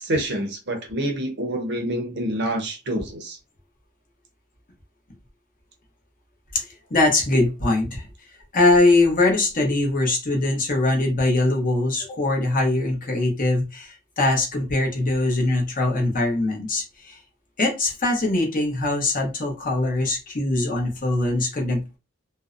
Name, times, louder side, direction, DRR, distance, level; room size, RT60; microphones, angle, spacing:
voice 1, 0.0-3.4, right 1 dB, 50° right, 0.6 m, -27 dB
voice 2, 6.5-8.1 8.5-17.2 17.6-22.0, left 2 dB, 40° left, 0.7 m, -22 dB
2.5 x 2.0 x 2.4 m
head